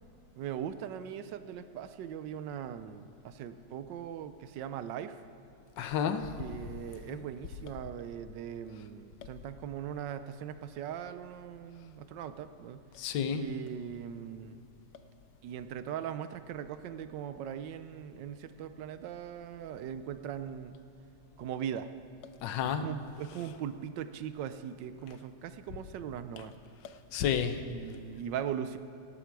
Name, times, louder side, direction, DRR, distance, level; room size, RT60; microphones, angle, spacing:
voice 1, 0.4-5.2 6.4-12.8 13.3-14.6 15.4-20.8 21.4-21.9 22.6-26.5 27.7-28.8, right 9 dB, 85° right, 11 dB, 1.4 m, -40 dB
voice 2, 5.8-6.4 7.1-7.2 12.9-13.5 22.4-22.9 23.4-23.5 26.4-26.5 27.1-27.6, left 7 dB, 90° left, 10 dB, 1.5 m, -31 dB
17.0 x 12.5 x 4.7 m, 2.8 s
omnidirectional pair, 1.9 m